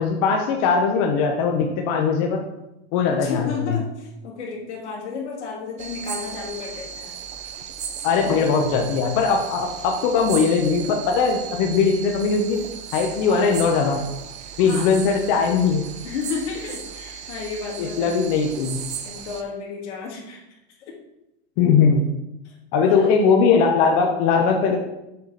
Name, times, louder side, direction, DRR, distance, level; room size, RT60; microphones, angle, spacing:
voice 1, 0.0-2.4 2.9-3.7 8.0-12.6 12.9-14.0 14.6-15.8 17.8-18.8 21.6-22.1 22.7-24.8, left 5 dB, 50° left, 2 dB, 0.9 m, -20 dB
voice 2, 3.1-7.1 8.1-8.4 14.6-14.9 16.0-18.2 19.0-20.9 22.4-23.1, left 5 dB, 90° left, -2 dB, 2.4 m, -33 dB
sound 1, 5.8-19.4, right 8 dB, 20° right, 0.5 m, -36 dB
6.8 x 4.9 x 4.1 m, 0.91 s
supercardioid pair, 145°, 33 cm